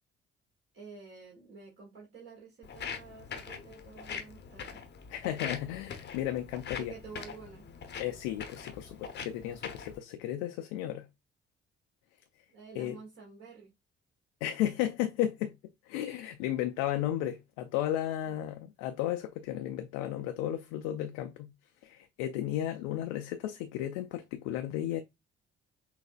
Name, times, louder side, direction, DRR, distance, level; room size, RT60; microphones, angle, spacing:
voice 1, 0.7-4.8 6.7-7.6 12.5-13.7 18.2-18.4, right 5 dB, 45° right, 1.6 m, -50 dB
Walk footsteps, 2.6-10.0, left 6 dB, 35° left, 0.7 m, -43 dB
voice 2, 5.1-6.9 8.0-11.1 12.8-13.0 14.4-15.6 15.8-21.5 21.8-25.0, left 12 dB, 65° left, 0.5 m, -34 dB
5.7 x 2.2 x 2.3 m
figure-of-eight pair, 45°, 30 cm